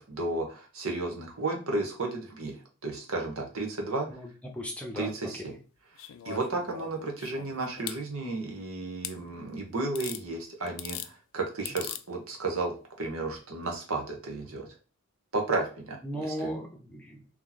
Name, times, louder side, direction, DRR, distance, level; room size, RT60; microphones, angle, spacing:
voice 1, 0.0-2.5 2.8-4.1 5.0-5.5 6.2-14.7 15.3-16.0 16.4-16.5, right 2 dB, 75° right, 1 dB, 1.1 m, -33 dB
voice 2, 4.1-5.6 16.0-17.3, equal, 5° left, 0 dB, 0.7 m, -37 dB
sound 1, 6.0-8.0 9.0-9.2 10.0-10.2 10.7-11.1 11.7-12.0 13.3-13.4, left 12 dB, 65° left, 0.3 m, -40 dB
3.0 x 2.9 x 4.0 m, 0.35 s
head